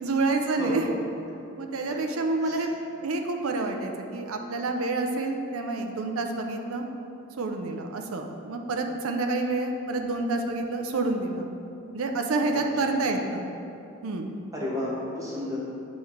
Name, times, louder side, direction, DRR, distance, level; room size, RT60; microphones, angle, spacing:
voice 1, 0.0-0.9 1.6-2.7 3.0-6.8 7.4-11.5 11.9-13.5 14.0-14.4, right 3 dB, 90° right, 4 dB, 0.6 m, -28 dB
voice 2, 0.6-0.9 2.4-2.7 12.5-12.9 14.5-15.6, left 1 dB, 15° right, -5 dB, 1.0 m, -33 dB
7.9 x 3.2 x 4.5 m, 2.7 s
head